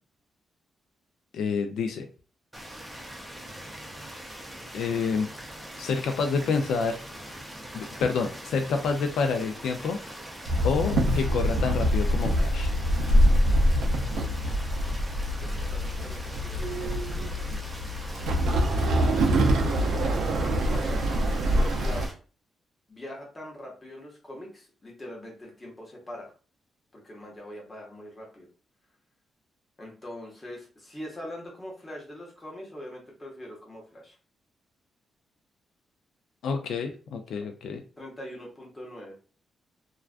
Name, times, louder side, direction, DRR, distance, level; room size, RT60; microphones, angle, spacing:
voice 1, 1.3-2.1 4.7-5.3 5.8-7.0 7.7-10.0 10.6-12.7 36.4-37.8, left 5 dB, 80° left, 5 dB, 0.3 m, -28 dB
sound 1, 2.5-22.1, equal, 5° right, 0.4 m, -42 dB
Walk footsteps / Chatter / Hiss, 10.5-22.1, equal, 90° right, 0.4 m, -25 dB
voice 2, 15.4-17.3 19.5-20.2 20.4-22.1 22.9-26.3 26.9-28.5 29.8-34.1 38.0-39.1, left 1 dB, 15° left, -2 dB, 0.8 m, -43 dB
2.3 x 2.2 x 2.4 m, 0.37 s
wide cardioid pair, 170°, 0 cm